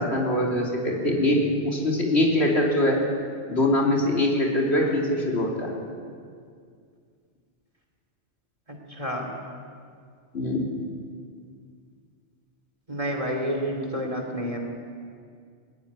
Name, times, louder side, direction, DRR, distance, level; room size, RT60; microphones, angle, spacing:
voice 1, 0.0-3.0 3.5-5.7 10.3-10.6, left 1 dB, 65° left, -3 dB, 3.8 m, -23 dB
voice 2, 8.7-9.3 12.9-14.6, equal, 30° right, 2 dB, 2.9 m, -30 dB
21.0 x 15.0 x 9.9 m, 2.2 s
omnidirectional pair, 1.2 m